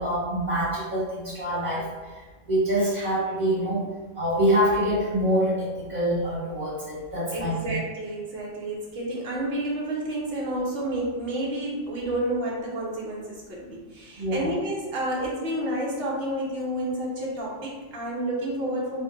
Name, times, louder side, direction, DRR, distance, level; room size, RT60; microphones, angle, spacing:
voice 1, 0.0-1.9 2.5-3.8 4.1-7.7 14.2-14.5, equal, 35° right, -7 dB, 1.3 m, -25 dB
voice 2, 7.3-19.0, right 1 dB, 55° right, -4 dB, 1.1 m, -30 dB
3.6 x 2.2 x 3.8 m, 1.4 s
omnidirectional pair, 1.3 m